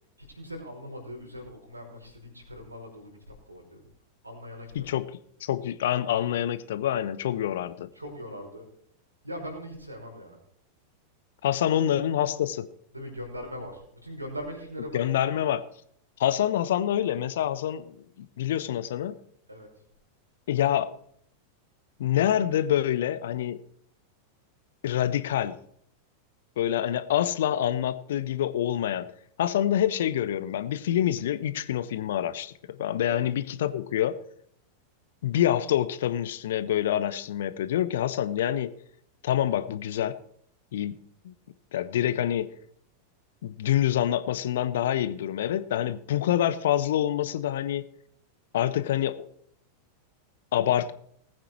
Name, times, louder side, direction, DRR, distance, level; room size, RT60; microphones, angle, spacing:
voice 1, 0.2-3.8 4.2-4.9 7.3-7.4 7.9-8.7 9.2-10.4 11.6-11.9 12.9-15.3 19.5-19.7 33.0-33.2, equal, 85° right, 1 dB, 5.3 m, -41 dB
voice 2, 4.7-5.1 5.4-7.9 11.4-12.7 14.9-15.6 16.2-17.9 18.4-19.1 20.5-20.9 22.0-23.6 24.8-25.6 26.6-29.1 29.4-34.2 35.2-38.7 39.2-40.2 40.7-40.9 41.2-41.3 41.7-42.5 43.4-47.8 48.5-49.3 50.5-50.9, left 11 dB, 60° left, 13 dB, 1.0 m, -26 dB
20.0 x 8.9 x 4.6 m, 0.66 s
figure-of-eight pair, 90°, 0 cm